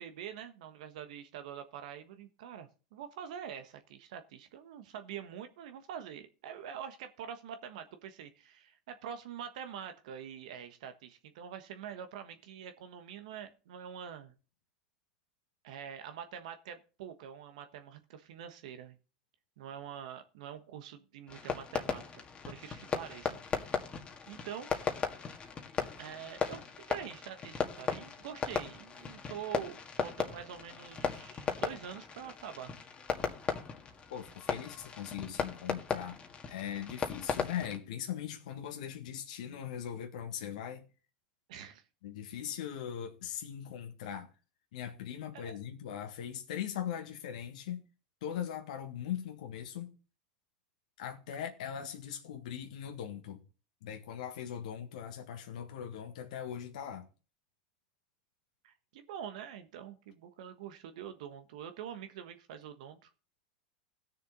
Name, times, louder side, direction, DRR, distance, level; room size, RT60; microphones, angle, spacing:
voice 1, 0.0-14.3 15.6-19.0 19.6-23.4 23.6-23.8 24.3-24.7 26.0-32.7 41.5-41.8 45.3-45.5 58.6-63.1, right 8 dB, 70° right, 1.3 m, -45 dB
Fireworks, 21.3-37.8, left 6 dB, 30° left, 1.8 m, -37 dB
voice 2, 34.1-36.2 36.5-40.8 42.0-44.3 44.7-47.8 48.2-49.9 51.0-53.4 53.8-57.1, left 9 dB, 70° left, 1.6 m, -40 dB
16.5 x 6.7 x 4.0 m
hypercardioid pair, 95°, 4 cm